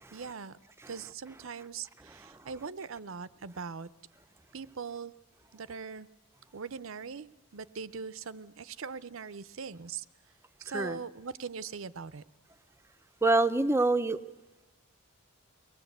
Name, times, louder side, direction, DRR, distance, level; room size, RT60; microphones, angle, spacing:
voice 1, 0.1-0.6 0.9-3.9 4.5-5.1 5.5-6.1 6.5-10.0 10.6-12.2, right 5 dB, 65° right, 17 dB, 0.7 m, -41 dB
voice 2, 13.2-14.2, right 2 dB, 10° right, 10 dB, 0.6 m, -26 dB
23.5 x 19.5 x 8.1 m, 1.2 s
head